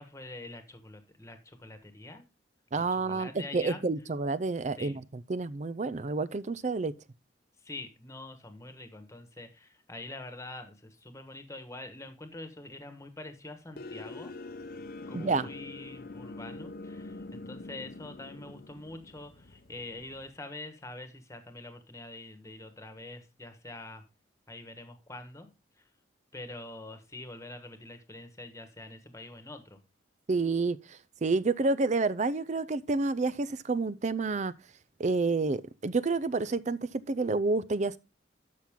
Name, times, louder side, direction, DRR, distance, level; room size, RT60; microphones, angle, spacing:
voice 1, 0.0-2.2 2.7-3.8 4.8-5.0 7.6-14.4 15.1-24.0 24.5-25.5 25.8-25.9 26.3-29.8, left 2 dB, 15° left, 1.4 m, -45 dB
voice 2, 2.7-5.0 5.3-6.9 15.1-15.5 30.3-34.5 35.0-38.0, right 3 dB, 40° right, 0.5 m, -29 dB
sound 1, 13.8-20.3, left 2 dB, 55° left, 0.8 m, -44 dB
12.0 x 5.9 x 3.7 m
head